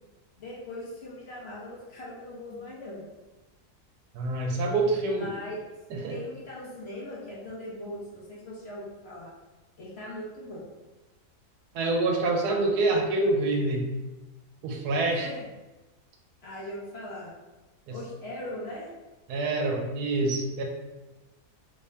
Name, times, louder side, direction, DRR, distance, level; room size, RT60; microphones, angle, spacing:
voice 1, 0.4-3.0 5.1-5.5 6.1-9.3 9.8-10.6 15.1-15.5 16.4-17.3 17.9-18.9, left 1 dB, 50° left, -5 dB, 0.9 m, -40 dB
voice 2, 4.1-5.3 5.9-6.1 11.7-13.8 14.6-15.3 17.9-18.0 19.3-20.6, right 2 dB, 80° right, 1 dB, 1.1 m, -26 dB
3.2 x 2.7 x 3.3 m, 1.1 s
omnidirectional pair, 1.7 m